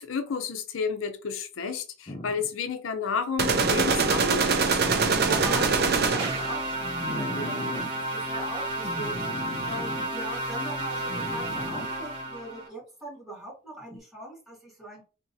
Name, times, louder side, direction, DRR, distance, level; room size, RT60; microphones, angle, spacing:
voice 1, 0.0-4.8, left 5 dB, 80° left, 0.5 m, -31 dB
sound 1, 2.1-2.5 3.4-4.3 4.8-6.1 6.8-7.9 8.8-10.1 11.1-12.0 13.9-14.0, left 1 dB, 25° left, 0.5 m, -37 dB
sound 2, 3.4-6.5, right 4 dB, 50° right, 0.5 m, -23 dB
voice 2, 5.2-15.0, right 2 dB, ahead, 2.0 m, -40 dB
sound 3, 6.2-12.7, right 1 dB, 30° right, 1.4 m, -32 dB
3.6 x 2.9 x 2.7 m
head